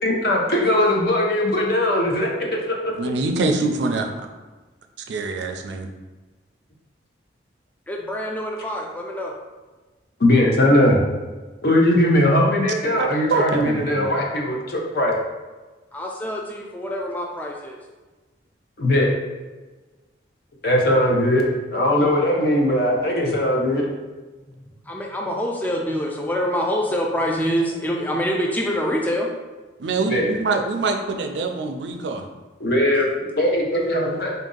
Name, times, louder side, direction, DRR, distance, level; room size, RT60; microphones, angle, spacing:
voice 1, 0.0-2.3 2.7-2.9 10.2-11.0 11.6-15.1 18.8-19.1 20.6-23.9 30.1-30.3 32.6-34.3, left 1 dB, 55° left, -1 dB, 0.7 m, -19 dB
voice 2, 3.0-4.3 5.1-5.9 13.0-14.1 29.8-32.2, right 3 dB, 70° right, 4 dB, 0.4 m, -24 dB
voice 3, 7.9-9.3 15.9-17.8 24.9-29.3, equal, 10° left, -1 dB, 0.3 m, -25 dB
4.0 x 2.6 x 3.8 m, 1.3 s
head